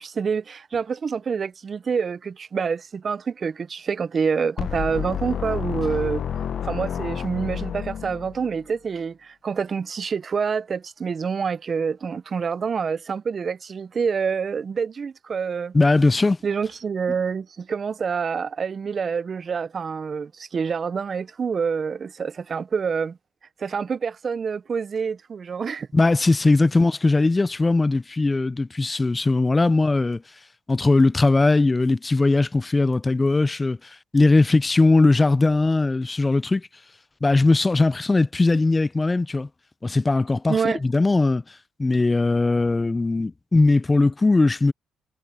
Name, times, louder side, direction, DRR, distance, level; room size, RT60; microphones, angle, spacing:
voice 1, 0.0-6.2 6.6-15.7 16.4-23.2 23.6-25.9 40.5-40.8, right 6 dB, 45° right, 0.7 m, -27 dB
sound 1, 4.6-8.6, left 8 dB, 60° left, 1.0 m, -30 dB
voice 2, 15.7-16.4 25.9-30.2 30.7-33.8 34.1-36.7 37.2-39.5 39.8-41.4 41.8-44.7, left 3 dB, 20° left, 0.5 m, -19 dB
cardioid pair, 90°, 0 cm